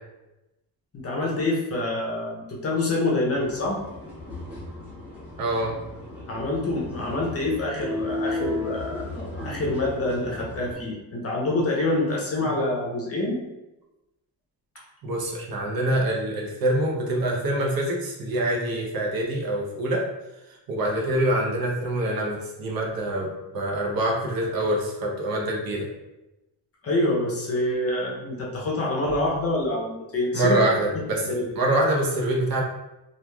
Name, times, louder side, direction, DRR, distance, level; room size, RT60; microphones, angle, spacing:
voice 1, 1.0-3.8 6.3-13.4 14.7-14.8 26.8-30.6 31.1-31.5, left 2 dB, 35° left, -2 dB, 0.6 m, -26 dB
sound 1, 3.3-10.7, left 2 dB, 5° right, 1.0 m, -35 dB
voice 2, 5.4-5.8 15.0-20.0 20.7-25.9 30.3-31.3 31.6-32.6, right 1 dB, 55° right, -1 dB, 0.7 m, -25 dB
3.1 x 2.3 x 2.2 m, 0.98 s
cardioid pair, 145°, 42 cm